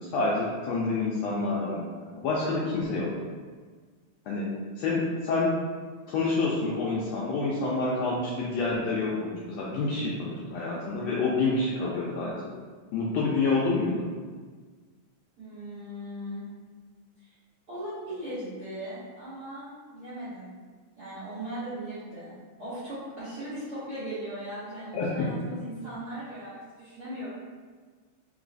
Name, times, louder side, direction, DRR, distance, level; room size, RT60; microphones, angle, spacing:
voice 1, 0.1-1.8 2.2-3.1 4.3-4.4 4.8-5.5 6.1-12.5 12.9-14.0 24.9-25.3, left 3 dB, 85° left, -5 dB, 1.5 m, -28 dB
voice 2, 15.4-16.4 17.2-17.3 17.7-20.6 21.0-22.3 22.6-27.3, right 1 dB, 60° right, -13 dB, 1.0 m, -38 dB
4.0 x 3.8 x 2.5 m, 1.5 s
omnidirectional pair, 3.5 m